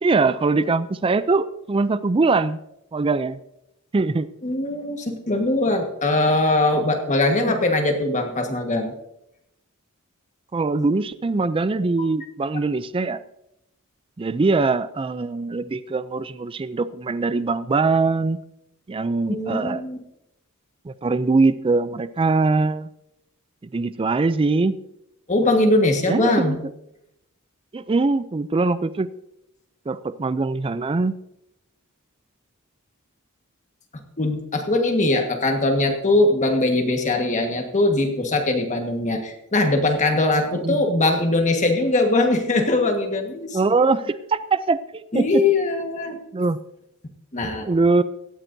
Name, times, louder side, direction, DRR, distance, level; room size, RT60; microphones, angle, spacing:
voice 1, 0.0-2.6 2.9-3.4 3.9-4.3 7.4-7.6 10.5-13.2 14.2-18.4 18.9-19.8 20.9-22.9 23.7-24.8 26.1-26.6 27.7-29.1 29.9-31.2 40.6-40.8 43.5-45.4 46.3-46.6 47.6-48.0, right 3 dB, 25° right, 14 dB, 0.4 m, -22 dB
voice 2, 4.4-8.9 19.3-20.0 25.3-26.6 34.2-43.6 45.1-46.2 47.3-47.7, left 2 dB, 35° left, 3 dB, 1.5 m, -21 dB
17.5 x 13.5 x 2.7 m, 0.81 s
head